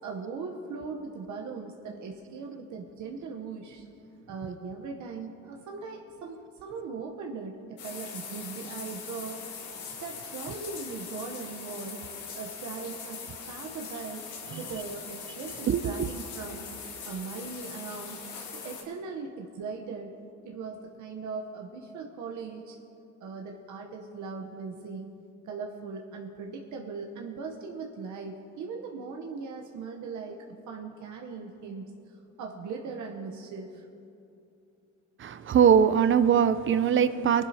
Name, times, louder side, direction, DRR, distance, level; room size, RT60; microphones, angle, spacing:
voice 1, 0.0-3.8 4.3-9.4 10.0-12.0 12.3-14.2 14.6-16.7 17.0-18.2 18.5-20.1 20.4-22.8 23.2-25.1 25.4-31.9 32.4-33.8, right 4 dB, 75° right, 1 dB, 1.0 m, -39 dB
sound 1, 7.8-18.8, left 5 dB, 85° left, 1.8 m, -41 dB
voice 2, 15.7-16.1 35.2-37.5, right 8 dB, 40° right, 13 dB, 0.5 m, -22 dB
19.0 x 11.5 x 2.8 m, 2.6 s
cardioid pair, 90°, 30 cm